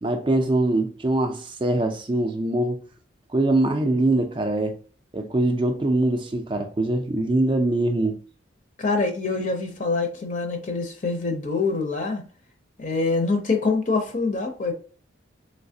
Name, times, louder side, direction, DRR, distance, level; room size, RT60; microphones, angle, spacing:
voice 1, 0.0-2.8 3.3-4.7 5.1-8.2, right 2 dB, 25° right, 0.3 m, -23 dB
voice 2, 8.8-12.2 12.8-14.7, left 3 dB, 40° left, 0.6 m, -25 dB
3.2 x 3.1 x 2.7 m
head